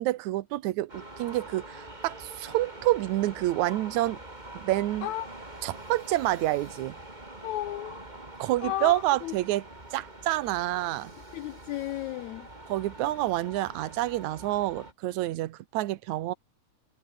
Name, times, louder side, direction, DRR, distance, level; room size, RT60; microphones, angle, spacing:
voice 1, 0.0-4.2 4.5-5.1 5.6-7.0 8.4-9.7 9.9-11.1 12.7-16.3, right 16 dB, 70° right, 2.1 m, -28 dB
sound 1, 0.9-14.9, right 1 dB, 10° right, 4.0 m, -45 dB
voice 2, 7.4-8.0 8.6-8.9 9.2-9.3 11.3-12.5, left 14 dB, 75° left, 1.9 m, -33 dB
omnidirectional pair, 3.8 m